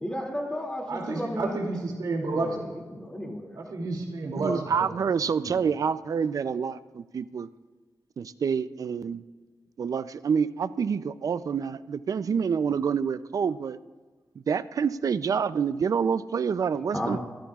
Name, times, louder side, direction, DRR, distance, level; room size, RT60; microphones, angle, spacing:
voice 1, 0.0-1.7 2.3-3.6 16.9-17.2, equal, 15° left, 0 dB, 2.5 m, -33 dB
voice 2, 0.9-2.6 3.5-4.9 5.4-5.5, right 3 dB, 85° right, 0 dB, 2.7 m, -31 dB
voice 3, 4.4-7.5 8.2-9.2 9.8-13.8 14.5-17.2, right 6 dB, 65° right, 14 dB, 0.5 m, -27 dB
26.0 x 14.0 x 2.4 m, 1.3 s
wide cardioid pair, 105°, 6 cm